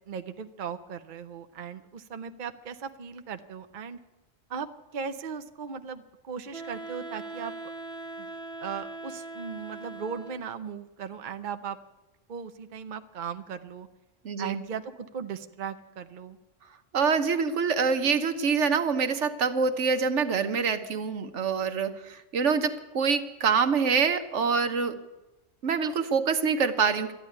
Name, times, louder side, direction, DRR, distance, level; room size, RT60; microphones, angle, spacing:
voice 1, 0.1-4.0 4.5-4.7 4.9-7.5 8.2-8.3 8.6-11.8 12.3-13.9 14.4-16.4, right 7 dB, 45° right, 8 dB, 0.8 m, -37 dB
Wind instrument woodwind instrument, 6.5-10.6, right 3 dB, 5° left, 0.8 m, -40 dB
voice 2, 14.2-14.6 16.9-25.0 25.6-27.1, right 5 dB, 70° right, 9 dB, 1.3 m, -25 dB
13.5 x 10.5 x 9.5 m, 1.0 s
omnidirectional pair, 1.3 m